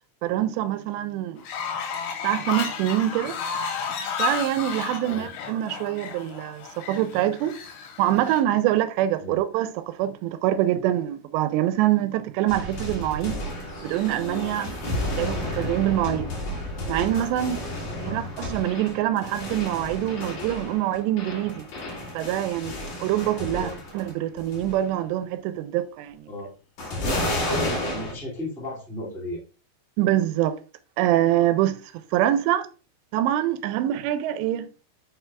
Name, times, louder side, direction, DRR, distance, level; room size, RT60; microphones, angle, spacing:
voice 1, 0.2-1.4 2.2-3.4 4.2-7.6 8.0-13.4 13.8-16.3 16.9-17.6 18.0-21.7 22.1-26.3 30.0-30.6 31.0-31.8 32.1-32.7 33.1-34.9, right 13 dB, 85° right, 2.8 m, -25 dB
Fowl, 1.4-8.4, left 6 dB, 80° left, 3.1 m, -32 dB
sound 1, 12.5-24.1 24.4-24.9 26.8-28.1, left 1 dB, 50° left, 2.8 m, -31 dB
voice 2, 27.8-29.4, left 1 dB, ahead, 0.7 m, -35 dB
8.0 x 5.7 x 2.3 m
omnidirectional pair, 4.9 m